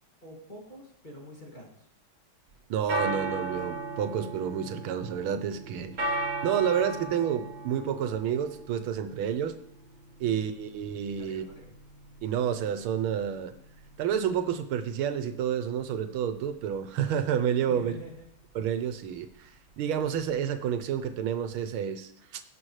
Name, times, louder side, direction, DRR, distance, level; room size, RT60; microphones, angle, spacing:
voice 1, 0.2-1.9 11.2-11.7 17.6-18.3, equal, 20° left, -3 dB, 2.4 m, -46 dB
sound 1, 2.5-21.6, right 2 dB, 40° right, 2.0 m, -38 dB
voice 2, 2.7-5.9 6.4-9.5 10.2-11.4 12.2-13.5 14.0-17.9 18.5-19.5 19.8-22.4, right 8 dB, 85° right, 9 dB, 1.6 m, -29 dB
17.0 x 5.9 x 3.2 m, 0.77 s
omnidirectional pair, 2.3 m